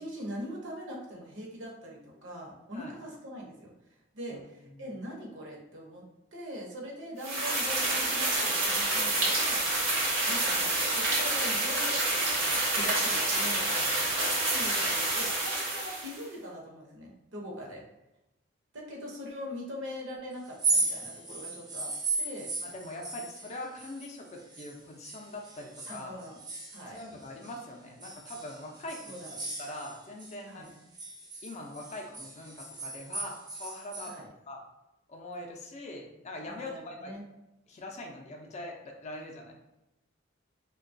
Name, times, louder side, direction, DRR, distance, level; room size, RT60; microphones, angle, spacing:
voice 1, 0.0-3.7 4.1-6.0 6.3-9.6 10.2-13.7 14.5-17.8 18.7-21.9 22.2-22.5 25.9-26.4 26.7-27.0 29.0-29.5 30.5-30.7 34.1-34.3 36.5-37.2, equal, 70° right, -2 dB, 0.7 m, -42 dB
sound 1, 7.2-16.2, right 2 dB, 90° right, 1.1 m, -28 dB
sound 2, 20.5-24.7 25.0-27.6 28.0-30.3 30.7-34.2, right 3 dB, 20° right, 0.5 m, -36 dB
voice 2, 22.6-26.2 26.9-29.1 29.6-30.7 31.4-34.1 34.5-34.6 35.1-37.1 37.7-39.5, left 1 dB, 35° left, 1 dB, 0.4 m, -42 dB
2.9 x 2.2 x 2.6 m, 0.95 s
head